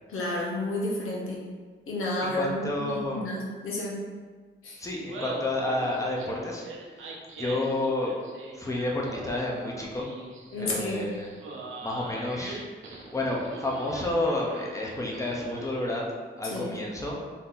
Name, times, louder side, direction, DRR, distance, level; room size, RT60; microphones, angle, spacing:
voice 1, 0.1-1.4 1.9-4.0 4.6-4.8 10.5-11.0 16.4-16.7, left 1 dB, 85° left, -3 dB, 1.0 m, -31 dB
voice 2, 2.2-3.3 4.8-6.6 7.0-7.1 7.4-8.1 8.5-10.0 10.6-11.3 11.8-12.6 13.1-16.1 16.4-17.2, left 2 dB, 15° left, -2 dB, 0.8 m, -30 dB
Laughter, 4.9-16.0, right 3 dB, 75° right, 0.8 m, -42 dB
4.1 x 2.8 x 3.9 m, 1.5 s
cardioid pair, 75°, 21 cm